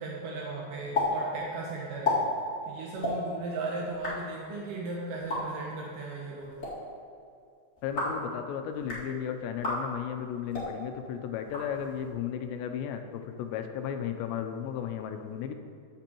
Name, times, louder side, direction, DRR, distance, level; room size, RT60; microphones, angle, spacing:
voice 1, 0.0-2.2 2.7-6.6, right 3 dB, 85° right, -2 dB, 1.9 m, -36 dB
sound 1, 0.9-1.1 1.3-1.4 1.9-2.2 2.9-3.1 3.8-4.1 5.1-5.4 6.4-6.7 7.8-8.2 8.7-9.0 9.6-9.8 10.4-10.7 11.4-12.1, left 3 dB, 35° left, 1.3 m, -32 dB
voice 2, 7.8-13.0 13.4-15.6, left 8 dB, 85° left, 6 dB, 2.8 m, -34 dB
14.5 x 6.8 x 3.0 m, 2.4 s
omnidirectional pair, 5.0 m